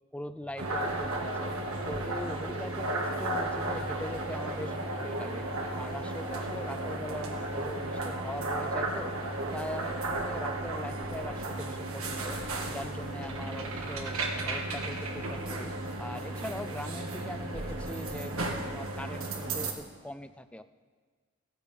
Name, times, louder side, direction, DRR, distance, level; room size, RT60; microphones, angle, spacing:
voice 1, 0.1-1.5 1.9-5.5 5.8-9.1 9.5-12.4 12.7-15.7 16.0-20.6, left 1 dB, 5° left, 11 dB, 0.4 m, -41 dB
sound 1, 0.6-19.7, right 2 dB, 85° right, 1.7 m, -34 dB
16.0 x 15.0 x 3.5 m, 1.5 s
head